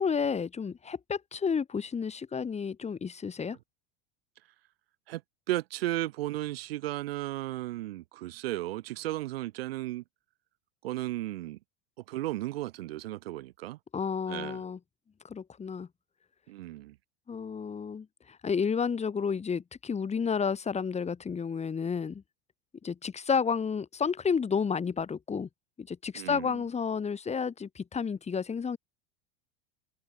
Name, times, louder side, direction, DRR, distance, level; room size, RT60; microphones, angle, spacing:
voice 1, 0.0-3.6 13.9-14.8 15.2-15.9 17.3-22.2 22.8-25.5 25.8-28.8, left 6 dB, 20° left, 7.1 m, -31 dB
voice 2, 5.5-10.0 10.8-11.6 12.1-13.8 14.3-14.6 16.5-16.9 26.1-26.6, right 16 dB, 80° right, 2.9 m, -34 dB
open air
hypercardioid pair, 110°, 30 cm